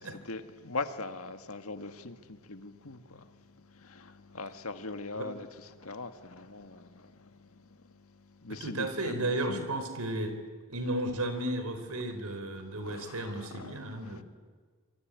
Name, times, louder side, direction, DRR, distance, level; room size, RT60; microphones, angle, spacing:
voice 1, 0.0-9.7 12.6-14.2, left 3 dB, 75° left, 1.8 m, -42 dB
voice 2, 8.6-10.4 10.7-14.2, right 1 dB, 85° right, 4.2 m, -34 dB
26.5 x 24.0 x 9.4 m
head